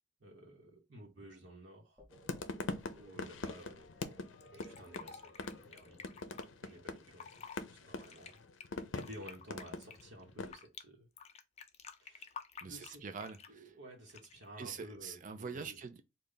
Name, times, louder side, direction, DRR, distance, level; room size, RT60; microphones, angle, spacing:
voice 1, 0.2-2.0 2.9-3.9 4.5-6.3 6.6-7.4 7.7-8.4 8.9-11.1 12.0-13.1 13.5-15.8, equal, 70° right, 1.1 m, -53 dB
sound 1, 2.0-6.4, right 1 dB, 10° right, 1.0 m, -60 dB
sound 2, 2.1-10.5, left 3 dB, 90° left, 0.5 m, -43 dB
Fill (with liquid), 4.4-6.4 7.0-7.6 8.0-10.8 11.2-13.6 14.1-14.5, left 6 dB, 35° left, 0.4 m, -51 dB
voice 2, 12.6-13.7 14.6-16.0, right 5 dB, 45° right, 0.5 m, -44 dB
3.3 x 2.4 x 3.8 m
head